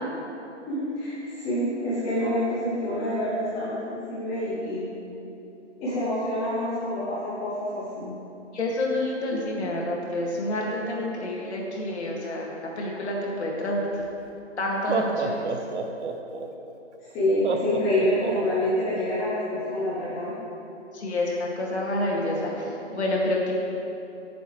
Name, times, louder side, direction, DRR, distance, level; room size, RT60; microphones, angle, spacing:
voice 1, 0.7-4.9 5.8-8.1 17.0-20.3, left 1 dB, 10° left, -8 dB, 0.6 m, -27 dB
voice 2, 8.5-12.5 12.8-13.9 14.6-15.5 20.9-23.5, left 1 dB, 65° left, -2 dB, 2.3 m, -28 dB
Laughter, 14.0-14.1 14.7-16.5 17.4-18.7, right 4 dB, 70° right, 1.0 m, -29 dB
13.5 x 6.9 x 3.2 m, 2.9 s
hypercardioid pair, 155°, 36 cm